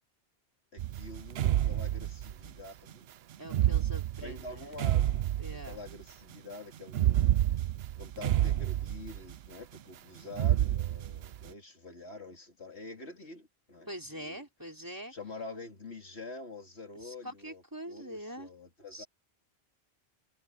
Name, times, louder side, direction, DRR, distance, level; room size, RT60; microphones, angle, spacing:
voice 1, 0.7-3.1 4.2-5.1 5.6-7.3 8.0-14.4 15.1-19.1, left 2 dB, 75° left, 3.2 m, -46 dB
sound 1, 0.8-2.5 3.5-6.0 6.9-9.5 10.3-11.5, right 13 dB, 70° right, 0.8 m, -29 dB
voice 2, 3.4-4.7 5.4-5.8 13.9-15.1 16.9-18.5 18.9-19.1, equal, 20° right, 4.0 m, -44 dB
omnidirectional pair, 1.1 m